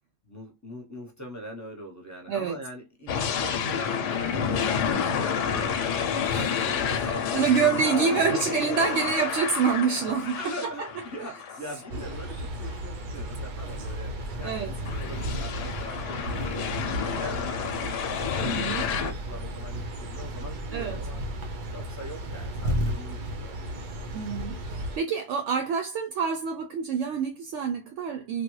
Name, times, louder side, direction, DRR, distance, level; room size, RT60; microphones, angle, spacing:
voice 1, 0.2-6.1 6.6-8.9 10.2-16.7 17.0-21.2 21.7-24.2, equal, 15° left, 0.7 m, -42 dB
sound 1, 3.1-12.1 12.7-12.8 14.2-19.1, left 7 dB, 75° left, 0.9 m, -30 dB
voice 2, 6.3-6.6 6.9-7.1 7.3-10.4 14.4-14.7 18.4-18.8 20.7-21.0 24.1-28.4, right 6 dB, 75° right, 0.9 m, -27 dB
sound 2, 11.9-25.0, equal, 55° right, 0.6 m, -34 dB
3.3 x 2.2 x 3.1 m
omnidirectional pair, 1.3 m